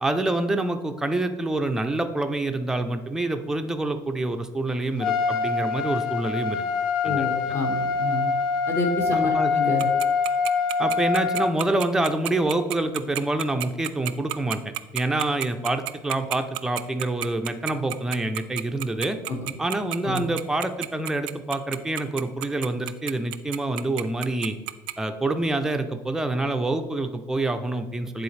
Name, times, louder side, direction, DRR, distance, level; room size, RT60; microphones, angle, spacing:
voice 1, 0.0-6.6 7.0-7.2 9.1-9.7 10.8-14.6 14.9-19.2 19.6-24.6 25.0-28.2, right 2 dB, 5° right, 6 dB, 0.5 m, -26 dB
Trumpet, 5.0-11.5, left 5 dB, 70° left, 0.5 m, -24 dB
voice 2, 7.0-8.3 8.7-9.9 19.3-19.5 20.0-20.2, left 2 dB, 30° left, 1 dB, 1.4 m, -28 dB
Tick-tock, 9.8-24.9, right 19 dB, 70° right, 0.3 m, -30 dB
9.6 x 4.0 x 3.2 m, 1.2 s
cardioid pair, 125°, 8 cm